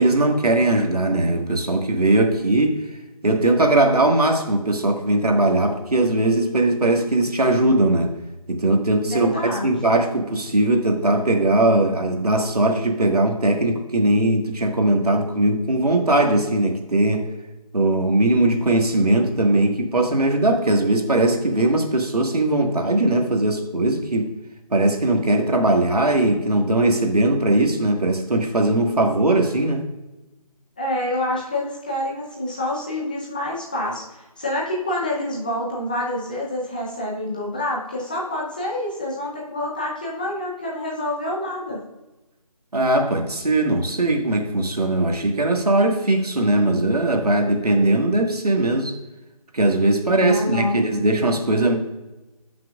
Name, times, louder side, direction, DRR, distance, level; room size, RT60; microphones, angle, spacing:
voice 1, 0.0-2.8 3.2-8.1 8.5-17.3 17.7-24.3 24.7-29.8 42.7-48.9 49.5-51.8, right 2 dB, 80° right, 3 dB, 1.7 m, -20 dB
voice 2, 9.0-9.7 30.8-41.8 50.2-50.8, left 1 dB, 15° left, -4 dB, 0.7 m, -27 dB
16.0 x 6.1 x 2.4 m, 1.0 s
figure-of-eight pair, 170°, 19 cm